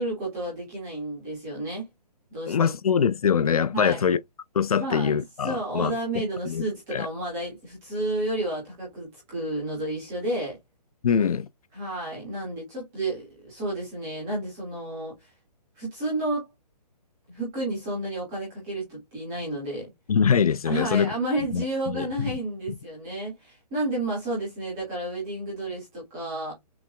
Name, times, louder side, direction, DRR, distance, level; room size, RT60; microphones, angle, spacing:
voice 1, 0.0-1.9 2.3-2.7 3.7-4.1 4.8-10.6 11.7-15.3 15.8-16.5 17.3-19.9 20.6-26.5, right 1 dB, 5° right, 0.4 m, -31 dB
voice 2, 2.5-4.2 4.5-5.9 6.5-6.6 6.9-7.1 11.0-11.5 20.1-21.1 21.5-22.3, left 7 dB, 60° left, 0.4 m, -23 dB
6.0 x 2.1 x 2.2 m
hypercardioid pair, 175°, 21 cm